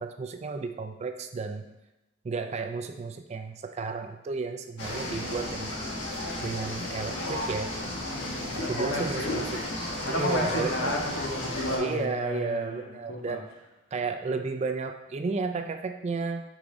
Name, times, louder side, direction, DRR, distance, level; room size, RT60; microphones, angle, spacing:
voice 1, 0.0-1.7 2.2-5.9 6.4-7.7 8.5-9.6 10.1-10.9 11.8-13.5 13.9-16.4, right 4 dB, 35° right, 6 dB, 0.3 m, -33 dB
sound 1, 4.8-11.8, left 1 dB, 65° left, 1.2 m, -33 dB
voice 2, 8.1-9.4 10.0-12.8 13.1-13.4, left 1 dB, 80° left, -1 dB, 1.0 m, -32 dB
3.6 x 3.0 x 4.8 m, 0.98 s
head